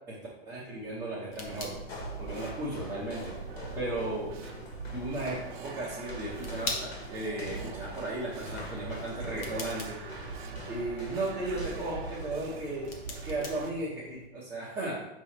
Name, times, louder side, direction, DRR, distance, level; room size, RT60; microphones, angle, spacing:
voice 1, 0.4-1.7 2.2-3.3 3.7-4.4 4.9-10.0 10.7-12.9 13.2-15.0, right 2 dB, 10° right, -10 dB, 0.9 m, -35 dB
sound 1, 0.7-14.3, left 2 dB, 15° left, 0.4 m, -45 dB
sound 2, 1.4-13.7, right 5 dB, 50° right, 0.9 m, -43 dB
sound 3, 1.7-12.5, left 1 dB, 85° left, 2.0 m, -45 dB
5.4 x 3.2 x 5.6 m, 0.91 s
supercardioid pair, 170°, 31 cm